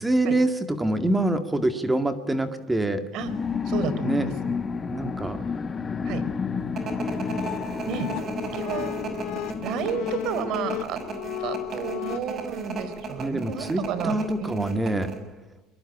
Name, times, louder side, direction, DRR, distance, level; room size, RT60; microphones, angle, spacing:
voice 1, 0.0-3.0 4.0-4.3 4.9-5.4 13.2-15.1, right 2 dB, 10° right, 8 dB, 2.0 m, -25 dB
sound 1, 3.2-11.3, left 5 dB, 25° left, 1.4 m, -31 dB
voice 2, 3.6-4.3 6.1-6.2 7.9-8.1 8.5-9.0 9.6-11.0 11.4-14.6, right 6 dB, 55° right, 13 dB, 3.8 m, -31 dB
sound 2, 6.8-15.2, right 4 dB, 35° right, 6.0 m, -35 dB
sound 3, 6.9-12.2, left 16 dB, 65° left, 0.9 m, -35 dB
22.5 x 21.5 x 10.0 m, 1.1 s
supercardioid pair, 110°, 0 cm